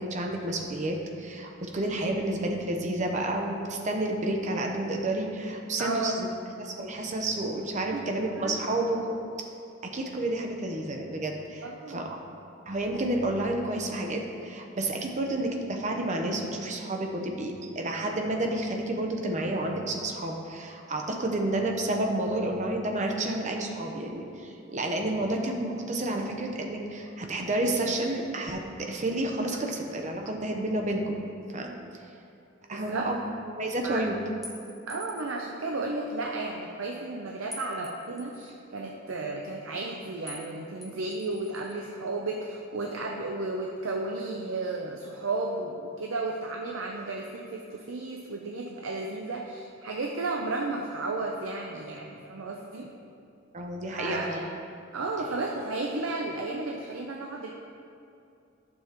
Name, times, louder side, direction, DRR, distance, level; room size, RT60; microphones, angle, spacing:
voice 1, 0.0-6.3 6.6-9.1 9.8-12.1 12.7-31.2 31.5-31.8 32.7-33.2 33.5-34.2 53.5-54.4, right 1 dB, 40° right, 2 dB, 0.8 m, -30 dB
voice 2, 5.8-6.2 7.9-8.1 8.4-8.6 11.6-12.1 32.7-33.1 33.8-34.0 34.9-52.9 53.9-54.5 54.9-57.5, right 2 dB, 90° right, 0 dB, 0.6 m, -33 dB
sound 1, 34.4-35.4 37.5-38.5 40.3-40.5 40.8-41.8, left 1 dB, ahead, 0.8 m, -45 dB
11.0 x 7.1 x 3.0 m, 2.6 s
head